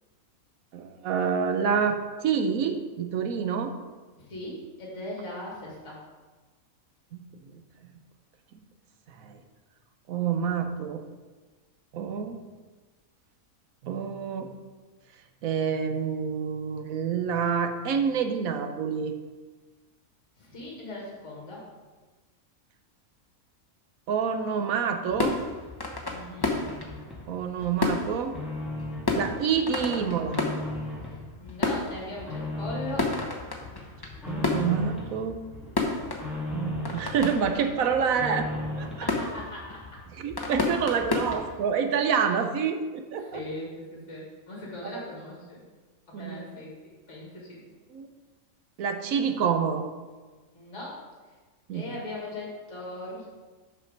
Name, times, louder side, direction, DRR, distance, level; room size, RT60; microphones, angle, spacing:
voice 1, 0.7-3.7 7.1-7.4 9.2-9.4 10.1-11.0 11.9-12.4 13.8-14.5 15.4-19.1 24.1-25.4 27.3-28.4 29.1-30.5 34.3-35.4 36.5-38.5 38.8-39.1 40.2-43.4 46.1-46.5 47.9-48.1 48.8-49.9 51.7-51.9, right 6 dB, 80° right, 6 dB, 1.1 m, -27 dB
voice 2, 4.2-6.0 20.4-21.6 26.0-26.6 29.1-29.4 29.9-30.1 31.0-33.1 39.0-40.0 43.2-45.6 46.1-46.7 47.1-47.6 50.5-51.0 51.7-53.3, left 1 dB, 55° left, -4 dB, 2.6 m, -39 dB
sound 1, 25.1-41.6, left 3 dB, 20° left, 0.8 m, -33 dB
sound 2, 26.4-27.2 27.7-29.2 29.6-31.2 31.6-33.2 33.6-35.2 35.5-37.1 37.5-39.1, left 2 dB, ahead, 1.6 m, -36 dB
6.7 x 6.0 x 5.1 m, 1.3 s
omnidirectional pair, 1.5 m